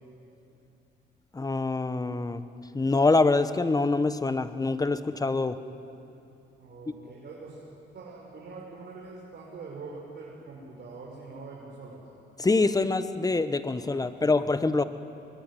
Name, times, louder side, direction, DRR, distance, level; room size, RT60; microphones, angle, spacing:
voice 1, 1.3-2.4 2.7-5.6 12.4-14.8, left 3 dB, 20° left, 12 dB, 1.2 m, -25 dB
voice 2, 6.6-7.6 7.9-12.0 14.1-14.3, right 4 dB, 55° right, -4 dB, 5.7 m, -43 dB
24.0 x 21.5 x 9.9 m, 2.7 s
cardioid pair, 90°, 20 cm